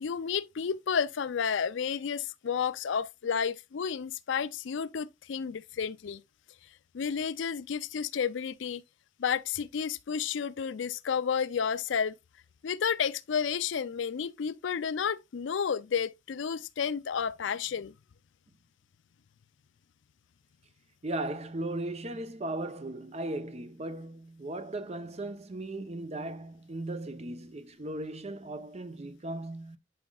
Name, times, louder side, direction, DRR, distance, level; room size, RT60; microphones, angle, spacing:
voice 1, 0.0-6.2 6.9-8.8 9.2-12.1 12.6-17.9, left 7 dB, 70° left, 0.4 m, -31 dB
voice 2, 21.0-29.8, right 2 dB, 35° right, 0.7 m, -37 dB
11.0 x 5.1 x 2.3 m
head